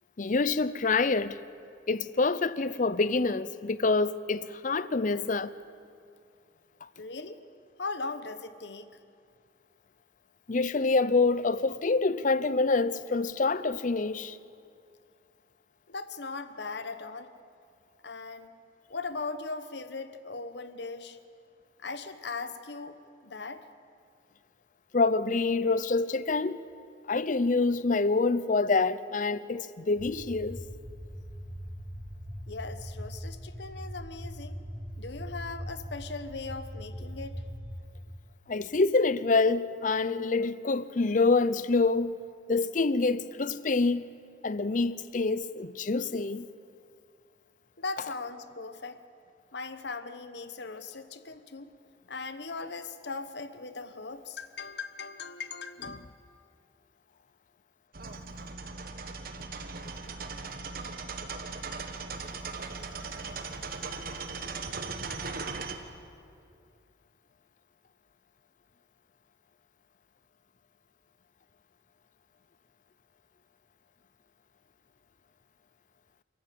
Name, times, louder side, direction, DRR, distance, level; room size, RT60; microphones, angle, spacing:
voice 1, 0.2-1.4 1.9-5.5 10.5-14.4 24.9-26.6 27.1-30.6 38.5-42.2 42.5-44.1 44.4-46.5, left 3 dB, 45° left, 0.6 m, -26 dB
voice 2, 7.0-7.4 7.8-9.0 15.9-17.3 18.0-18.6 18.9-21.2 21.8-23.7 32.5-34.6 35.0-37.5 47.8-49.0 49.5-51.7 52.1-56.1, left 4 dB, 65° left, 1.1 m, -39 dB
sound 1, 30.0-37.7, equal, 10° left, 2.4 m, -41 dB
sound 2, 57.9-65.8, right 4 dB, 50° right, 1.4 m, -38 dB
29.0 x 14.0 x 8.5 m
head